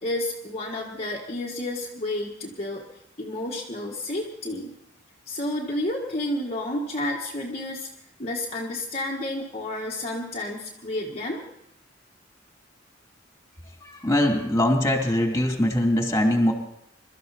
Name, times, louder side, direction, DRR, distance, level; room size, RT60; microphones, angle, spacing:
voice 1, 0.0-2.8 3.2-4.7 5.3-7.9 8.2-11.4, left 1 dB, 35° left, -3 dB, 1.6 m, -30 dB
voice 2, 13.8-16.5, left 1 dB, 15° left, 2 dB, 2.8 m, -22 dB
23.0 x 13.0 x 4.2 m, 0.78 s
head